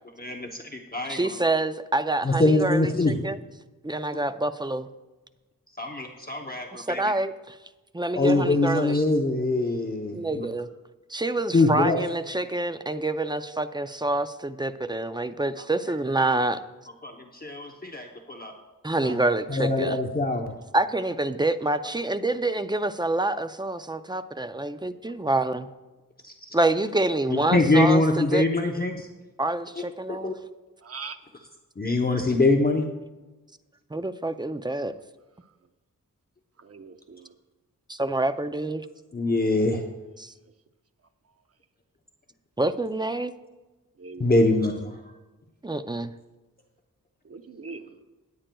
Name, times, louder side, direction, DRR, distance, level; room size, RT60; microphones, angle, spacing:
voice 1, 0.2-1.3 2.2-3.2 5.8-7.1 8.2-10.5 11.5-12.0 17.0-18.5 19.0-19.1 19.5-20.5 26.4-26.5 27.3-29.1 29.8-30.3 31.8-32.9 39.1-39.8 44.2-45.0, left 2 dB, 25° left, 0.7 m, -24 dB
voice 2, 1.1-3.4 3.8-4.9 6.7-7.5 7.9-9.0 10.1-10.7 11.1-16.6 18.8-20.0 20.7-25.7 26.5-28.5 29.4-30.3 33.9-34.9 37.9-38.8 40.2-40.3 42.6-43.3 45.6-46.1, right 2 dB, 15° right, 0.4 m, -27 dB
voice 3, 30.8-31.2 36.6-37.3 44.0-44.3 47.2-48.0, right 5 dB, 45° right, 0.7 m, -41 dB
19.0 x 8.8 x 2.3 m
wide cardioid pair, 115°, 35 cm